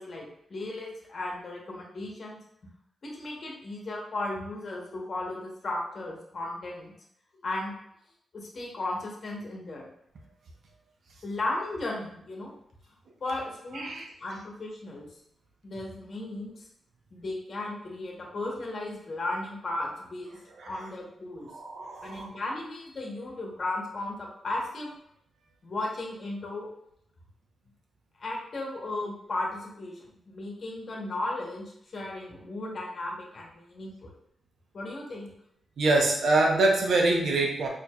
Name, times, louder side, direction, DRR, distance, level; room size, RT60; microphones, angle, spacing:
voice 1, 0.0-2.4 3.0-6.9 7.4-7.7 8.3-9.9 11.2-12.5 13.2-15.1 15.6-16.6 17.1-20.4 20.7-21.5 22.0-24.9 25.6-26.7 28.2-34.1 34.7-35.3, left 2 dB, 45° left, -1 dB, 0.9 m, -35 dB
voice 2, 13.7-14.1 20.6-20.7 21.5-22.3 35.8-37.7, right 2 dB, 75° right, 0 dB, 0.7 m, -25 dB
4.4 x 2.7 x 2.3 m, 0.71 s
wide cardioid pair, 120°, 0 cm